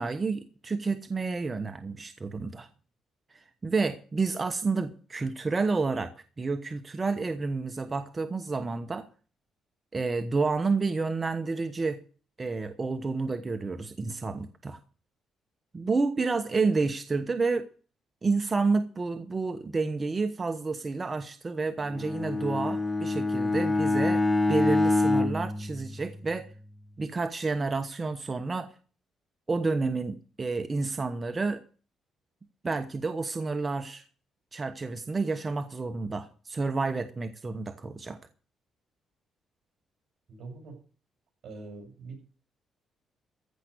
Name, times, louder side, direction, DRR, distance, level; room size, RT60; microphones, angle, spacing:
voice 1, 0.0-2.7 3.3-9.1 9.9-12.0 12.4-14.8 15.7-17.7 18.2-26.5 27.0-28.7 29.5-31.6 32.6-34.0 34.5-38.2, right 4 dB, 30° right, 1.1 m, -30 dB
Bowed string instrument, 21.8-26.5, left 2 dB, 10° left, 1.4 m, -26 dB
voice 2, 40.3-40.8 41.4-42.3, right 3 dB, 60° right, 6.8 m, -43 dB
15.0 x 5.9 x 8.2 m
cardioid pair, 90°, 0 cm